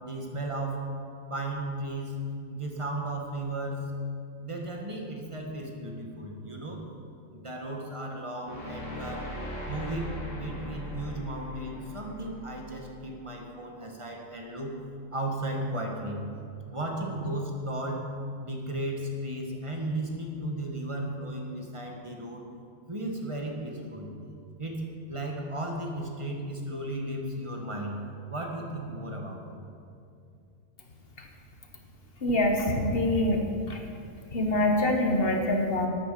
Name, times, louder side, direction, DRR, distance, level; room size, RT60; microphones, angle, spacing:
voice 1, 0.0-0.8 1.3-2.1 2.5-3.9 4.4-6.8 7.3-9.3 9.7-14.8 15.1-16.2 16.7-18.1 18.4-22.4 22.9-24.1 24.6-24.8 25.1-28.0 28.3-29.6, right 1 dB, 25° right, 1 dB, 1.6 m, -35 dB
sound 1, 8.4-13.5, left 1 dB, 60° left, 3.1 m, -40 dB
voice 2, 32.2-33.8 34.3-35.9, left 1 dB, 45° left, 3 dB, 1.5 m, -25 dB
12.0 x 9.2 x 6.8 m, 2.4 s
omnidirectional pair, 1.4 m